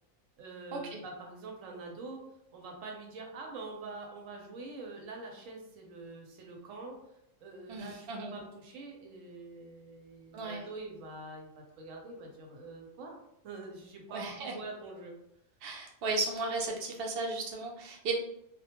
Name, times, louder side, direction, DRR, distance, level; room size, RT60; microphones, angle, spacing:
voice 1, 0.4-2.3 2.5-7.0 7.4-13.2 13.4-15.1, right 3 dB, 80° right, 0 dB, 1.0 m, -45 dB
voice 2, 7.7-8.3 10.3-10.6 14.1-14.5 15.6-18.1, right 3 dB, 60° right, 0 dB, 0.6 m, -35 dB
2.3 x 2.2 x 2.8 m, 0.79 s
omnidirectional pair, 1.3 m